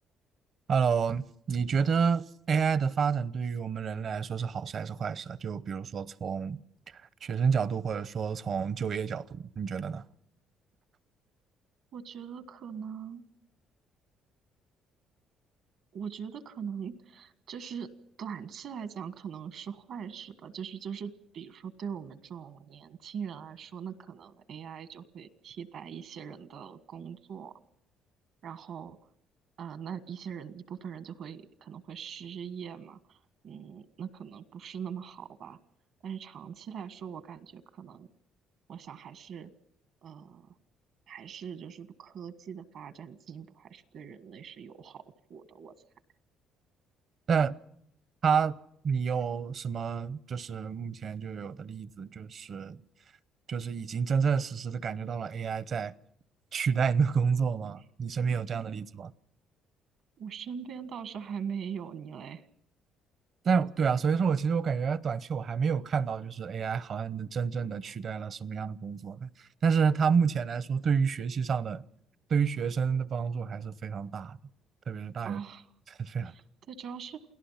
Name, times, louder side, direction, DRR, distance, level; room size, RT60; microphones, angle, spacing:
voice 1, 0.7-6.6 6.9-10.0 47.3-47.6 48.2-48.6 48.8-52.8 53.5-55.9 56.5-59.1 63.4-71.8 72.3-74.4 74.9-75.4 76.0-76.3, right 6 dB, 50° right, 0.8 m, -29 dB
voice 2, 11.9-13.2 15.9-17.9 18.2-27.5 28.4-29.0 29.6-33.2 33.4-35.6 36.0-38.1 38.7-39.5 40.0-40.5 41.1-45.0 45.3-45.7 60.2-62.4 75.2-75.7 76.2-77.2, right 7 dB, 70° right, 1.5 m, -41 dB
28.5 x 17.5 x 5.8 m
cardioid pair, 95°, 0 cm